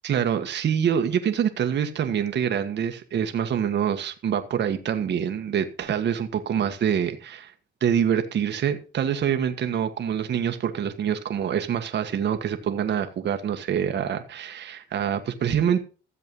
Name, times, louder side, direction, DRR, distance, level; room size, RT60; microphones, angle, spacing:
voice 1, 0.0-7.5 7.8-15.8, right 8 dB, 60° right, 1.5 m, -25 dB
14.0 x 7.6 x 5.4 m
cardioid pair, 90°, 20 cm